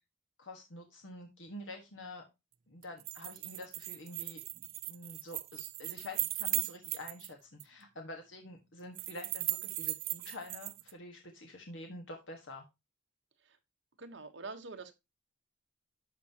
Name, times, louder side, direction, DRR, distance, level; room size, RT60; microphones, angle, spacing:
voice 1, 0.4-2.2 2.7-4.4 4.9-12.6, left 1 dB, 85° left, 1.5 m, -47 dB
Metal Keys (Runing), 2.8-7.3 7.6-7.7 9.0-10.9, right 18 dB, 50° right, 0.4 m, -37 dB
voice 2, 14.0-14.9, right 3 dB, 75° right, 1.1 m, -45 dB
11.5 x 5.4 x 2.8 m
head